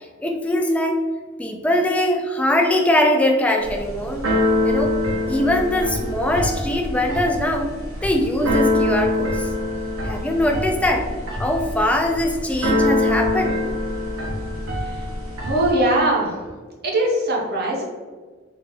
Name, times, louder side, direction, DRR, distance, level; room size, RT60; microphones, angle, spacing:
voice 1, 0.2-1.0 1.4-4.2 4.6-5.0 5.3-7.7 8.0-9.5 10.0-11.1 11.4-13.6, left 1 dB, 5° left, 2 dB, 0.3 m, -21 dB
Keyboard (musical), 3.6-15.7, left 1 dB, 90° right, 0.8 m, -24 dB
voice 2, 15.4-16.3 16.8-17.8, right 1 dB, 50° right, -1 dB, 0.8 m, -21 dB
3.7 x 2.3 x 3.2 m, 1.4 s
head